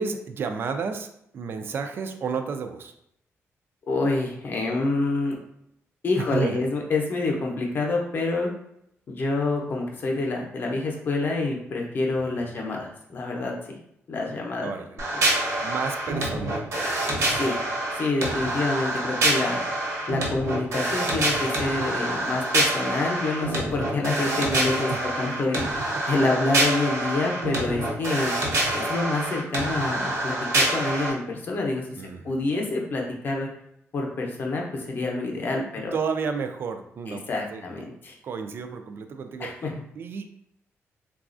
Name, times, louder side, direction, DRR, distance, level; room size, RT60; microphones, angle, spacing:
voice 1, 0.0-2.9 6.2-6.6 12.2-12.6 14.6-15.0 15.6-16.7 17.1-17.3 24.9-25.1 25.9-26.0 32.0-32.4 35.7-37.2 37.5-37.9 38.2-39.7 40.0-40.3, right 5 dB, 50° right, 7 dB, 0.3 m, -32 dB
voice 2, 3.9-5.4 6.0-8.5 9.1-13.8 14.1-14.7 17.4-17.6 18.0-19.6 20.1-24.9 25.2-25.6 26.1-28.3 28.7-31.8 32.2-33.5 33.9-35.9 37.1-38.1 39.4-39.7, left 3 dB, 40° left, 0 dB, 0.6 m, -27 dB
sound 1, 15.0-31.1, right 1 dB, 75° right, 1.0 m, -26 dB
3.9 x 2.3 x 2.5 m, 0.75 s
wide cardioid pair, 160°, 5 cm